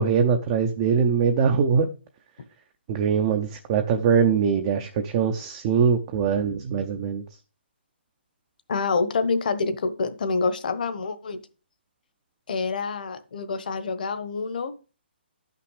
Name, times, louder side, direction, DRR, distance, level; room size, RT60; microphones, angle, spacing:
voice 1, 0.0-1.9 2.9-7.2, right 6 dB, 20° right, 6 dB, 0.5 m, -22 dB
voice 2, 8.7-11.4 12.5-14.7, left 4 dB, 50° left, 11 dB, 1.2 m, -27 dB
11.0 x 5.9 x 4.8 m, 0.33 s
hypercardioid pair, 175°, 6 cm